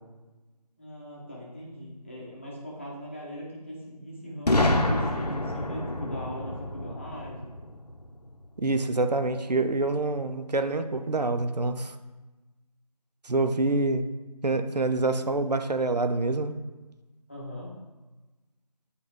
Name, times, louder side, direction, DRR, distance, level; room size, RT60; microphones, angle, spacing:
voice 1, 0.8-7.5 17.3-17.7, equal, 20° left, -5 dB, 0.8 m, -39 dB
Boom, 4.5-8.3, left 1 dB, 75° left, 0.9 m, -27 dB
voice 2, 8.6-12.0 13.2-14.1 14.4-16.6, right 2 dB, 80° right, 9 dB, 0.6 m, -26 dB
8.2 x 3.9 x 3.7 m, 1.2 s
figure-of-eight pair, 170°, 21 cm